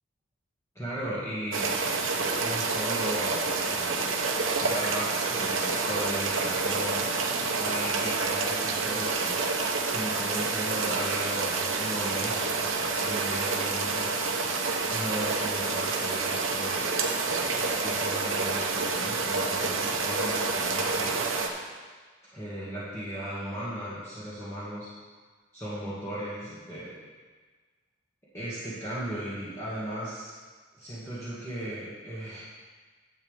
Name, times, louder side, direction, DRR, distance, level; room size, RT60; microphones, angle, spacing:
voice 1, 0.8-1.8 2.2-4.1 4.6-7.1 7.6-9.4 9.9-14.1 14.9-16.9 17.2-21.3 22.3-24.9 25.5-26.9 28.3-30.3 30.8-32.4, right 1 dB, 15° left, -12 dB, 2.0 m, -36 dB
sound 1, 1.5-21.5, right 4 dB, 75° right, 1.0 m, -28 dB
11.5 x 8.2 x 3.5 m, 1.4 s
head